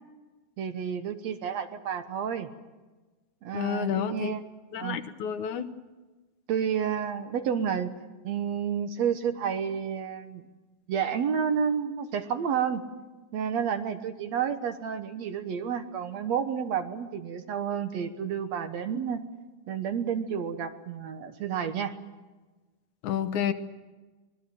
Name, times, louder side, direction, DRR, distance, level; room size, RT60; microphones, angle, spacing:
voice 1, 0.6-2.5 3.4-4.4 4.8-5.0 6.5-7.9 8.2-10.5 10.9-12.8 13.3-19.2 19.7-21.9, right 7 dB, 65° right, 8 dB, 2.2 m, -30 dB
voice 2, 3.5-4.3 4.7-5.7 23.0-23.5, left 9 dB, 70° left, 9 dB, 2.4 m, -29 dB
25.0 x 20.5 x 7.8 m, 1.2 s
omnidirectional pair, 3.7 m